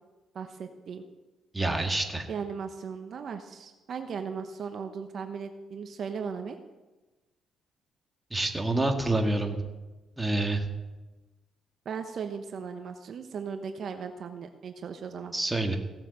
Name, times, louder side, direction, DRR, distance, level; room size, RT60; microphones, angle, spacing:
voice 1, 0.3-1.0 2.3-6.6 11.8-15.3, right 6 dB, 55° right, 7 dB, 1.0 m, -37 dB
voice 2, 1.5-2.3 8.3-9.6 10.2-10.7 15.3-15.8, right 2 dB, 15° right, 4 dB, 1.8 m, -27 dB
16.5 x 7.3 x 6.8 m, 1.1 s
cardioid pair, 90°, 0 cm